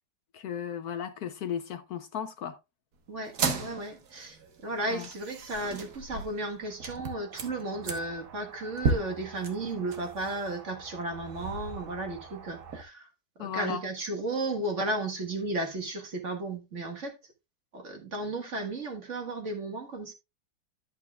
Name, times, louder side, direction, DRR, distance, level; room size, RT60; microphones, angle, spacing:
voice 1, 0.3-2.6 4.9-5.1 13.4-13.8, left 8 dB, 65° left, 1.1 m, -35 dB
sound 1, 3.2-12.8, right 4 dB, 60° right, 1.7 m, -36 dB
voice 2, 3.6-13.1 13.4-17.1 17.7-20.1, right 2 dB, 45° right, 1.7 m, -34 dB
11.0 x 8.3 x 2.3 m
omnidirectional pair, 1.9 m